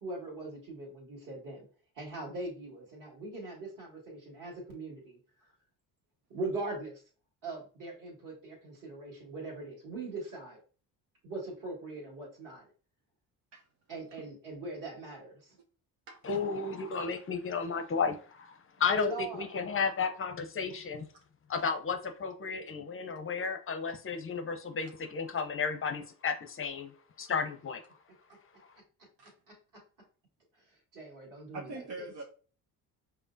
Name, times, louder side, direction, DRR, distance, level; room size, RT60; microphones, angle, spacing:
voice 1, 0.0-1.7 1.9-5.2 6.3-7.0 7.4-10.6 11.2-12.7 13.9-15.6 18.8-19.5 29.2-29.8 30.6-32.0, right 2 dB, 40° right, 1.9 m, -41 dB
voice 2, 16.2-21.1 21.5-26.9 27.2-27.8, left 5 dB, 25° left, 0.7 m, -33 dB
voice 3, 31.5-32.2, right 2 dB, 60° right, 0.9 m, -42 dB
5.3 x 2.1 x 2.6 m
hypercardioid pair, 60°, 49 cm